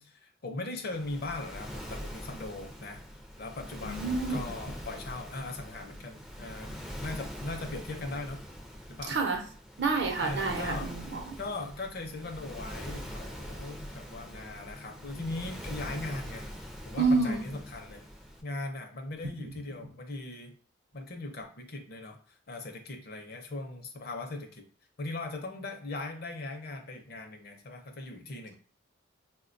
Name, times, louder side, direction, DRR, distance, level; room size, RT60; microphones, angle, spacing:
voice 1, 0.0-3.0 3.4-8.5 8.9-9.2 10.2-11.0 11.4-16.5 16.9-18.0 18.4-20.6 20.9-24.6 25.0-28.6, left 2 dB, 50° left, 4 dB, 0.5 m, -39 dB
Waves surf, 0.9-18.4, equal, 5° right, 0.4 m, -43 dB
voice 2, 3.8-4.5 9.1-9.4 9.8-11.3 17.0-17.5, right 3 dB, 60° right, 3 dB, 0.6 m, -28 dB
4.3 x 2.2 x 2.5 m, 0.43 s
head